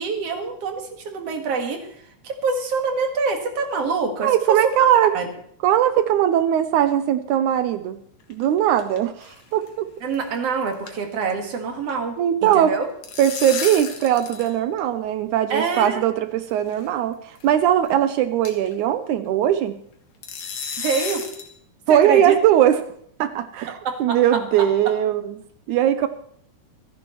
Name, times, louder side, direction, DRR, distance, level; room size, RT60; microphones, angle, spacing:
voice 1, 0.0-4.3 5.1-5.3 10.0-12.9 15.5-16.0 20.8-21.2 21.9-22.3 23.7-24.7, right 4 dB, 55° right, 3 dB, 2.7 m, -26 dB
voice 2, 4.2-5.1 5.6-8.0 8.3-9.9 12.2-12.7 13.2-19.8 21.9-22.8 23.2-25.4 25.7-26.1, right 11 dB, 80° right, 10 dB, 2.1 m, -20 dB
sound 1, 8.2-9.0 9.2-9.4 9.7-9.8 10.1-10.4 10.6-11.4 11.7-11.9 12.7-14.5 14.8-14.9 15.7-15.8 16.7-16.9 17.4-17.5 17.9-18.0 18.5-18.7 20.2-21.5, left 6 dB, 70° left, 3.1 m, -32 dB
26.5 x 10.5 x 3.1 m, 0.66 s
omnidirectional pair, 3.6 m